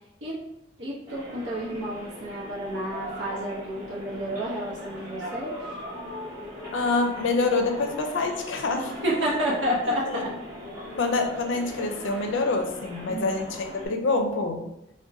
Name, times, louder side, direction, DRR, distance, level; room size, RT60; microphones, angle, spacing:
voice 1, 0.8-5.6 9.0-10.3 12.1-12.3 13.1-13.4, equal, 75° right, -5 dB, 0.7 m, -30 dB
sound 1, 1.1-13.9, left 1 dB, 20° right, 1.2 m, -39 dB
voice 2, 6.7-9.0 9.8-10.2 10.9-14.6, left 3 dB, 90° left, 4 dB, 0.5 m, -26 dB
2.5 x 2.1 x 3.8 m, 0.86 s
head